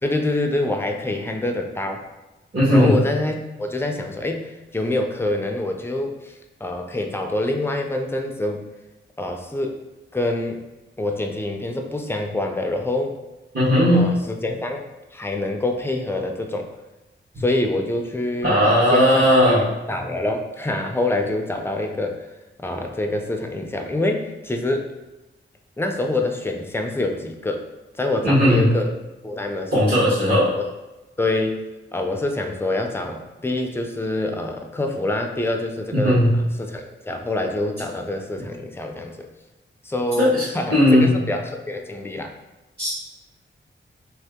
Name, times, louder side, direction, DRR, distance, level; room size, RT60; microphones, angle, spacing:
voice 1, 0.0-2.0 2.7-8.7 9.2-9.8 10.1-10.6 11.0-13.2 13.9-14.9 15.1-16.7 17.4-22.3 22.6-24.9 25.8-27.6 27.9-28.9 29.2-29.9 30.6-30.7 31.2-31.6 31.9-36.2 36.6-39.3 39.8-42.3, left 2 dB, 10° left, 3 dB, 0.4 m, -26 dB
voice 2, 2.5-2.9 13.5-14.1 18.4-19.6 28.2-28.6 29.7-30.5 35.9-36.3 40.2-40.4 40.7-41.1 42.8-42.9, equal, 50° right, -10 dB, 1.1 m, -16 dB
2.8 x 2.7 x 3.5 m, 1.0 s
wide cardioid pair, 125°, 21 cm